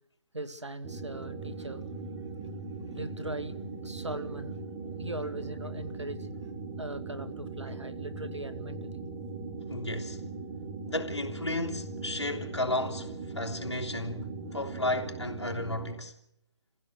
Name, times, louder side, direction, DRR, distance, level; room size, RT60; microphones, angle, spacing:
voice 1, 0.3-1.8 2.9-3.6 3.8-4.6 5.0-6.3 6.8-9.0, right 2 dB, 80° right, 2.2 m, -39 dB
sound 1, 0.8-15.9, right 3 dB, 20° right, 3.3 m, -39 dB
voice 2, 9.7-10.2 10.9-16.1, left 2 dB, 75° left, 3.3 m, -33 dB
28.5 x 15.5 x 6.8 m
figure-of-eight pair, 145°, 15 cm